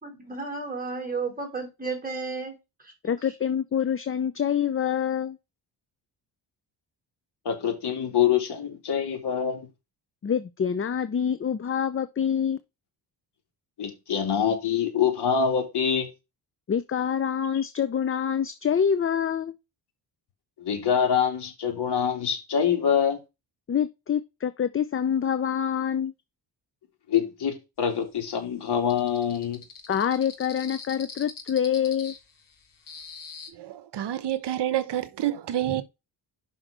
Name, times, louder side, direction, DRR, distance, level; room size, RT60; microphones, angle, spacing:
voice 1, 0.0-2.6 3.0-3.1, right 4 dB, 20° right, 3.7 m, -33 dB
voice 2, 3.0-5.4 10.2-12.6 16.7-19.6 23.7-26.1 29.9-32.1, left 8 dB, 30° left, 0.6 m, -26 dB
voice 3, 7.4-9.7 13.8-16.1 20.6-23.2 27.1-29.7, left 8 dB, 60° left, 3.1 m, -25 dB
sound 1, 28.9-33.5, left 5 dB, 45° left, 2.0 m, -43 dB
voice 4, 33.5-35.8, right 12 dB, 65° right, 0.9 m, -28 dB
6.0 x 5.7 x 5.1 m
cardioid pair, 115°, 44 cm